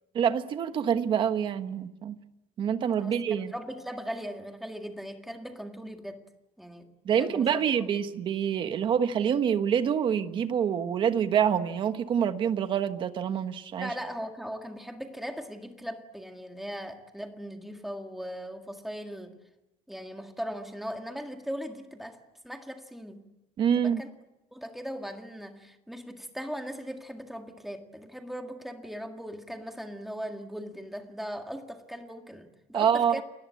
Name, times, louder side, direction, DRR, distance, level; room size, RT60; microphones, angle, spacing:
voice 1, 0.1-2.1 2.6-3.5 7.0-13.9 23.6-24.0 32.7-33.2, right 8 dB, 35° right, 1.3 m, -26 dB
voice 2, 3.0-6.2 6.6-6.9 7.2-7.6 13.8-19.4 19.9-22.2 22.4-23.3 23.8-24.1 24.5-33.2, equal, ahead, 1.9 m, -39 dB
29.0 x 21.0 x 8.5 m
cardioid pair, 180°, 14 cm